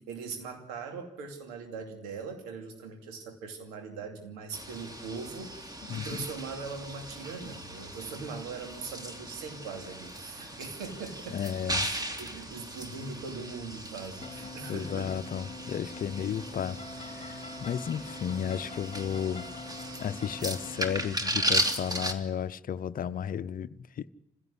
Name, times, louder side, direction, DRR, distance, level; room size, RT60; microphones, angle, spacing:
voice 1, 0.0-11.4 11.8-15.1, right 4 dB, 80° right, 2.7 m, -41 dB
sound 1, 4.5-22.1, right 1 dB, 20° right, 2.9 m, -37 dB
voice 2, 11.3-11.9 14.7-19.5 20.0-24.1, left 8 dB, 50° left, 0.8 m, -33 dB
sound 2, 14.2-21.1, left 2 dB, 30° left, 2.1 m, -44 dB
26.0 x 16.0 x 9.9 m
hypercardioid pair, 45°, 19 cm